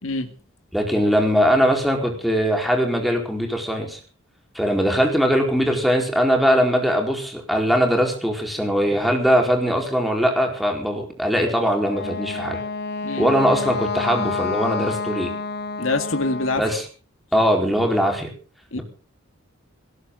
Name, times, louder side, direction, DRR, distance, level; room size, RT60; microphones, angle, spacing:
voice 1, 0.0-0.3 13.0-13.3 15.8-16.6 18.7-18.8, left 2 dB, 75° left, 7 dB, 2.1 m, -25 dB
voice 2, 0.7-4.0 4.5-12.6 13.2-15.3 16.6-16.8 17.3-18.3, equal, ahead, 1 dB, 4.5 m, -21 dB
Wind instrument woodwind instrument, 11.7-16.7, left 4 dB, 55° left, 0.9 m, -29 dB
19.0 x 17.0 x 3.9 m, 0.38 s
head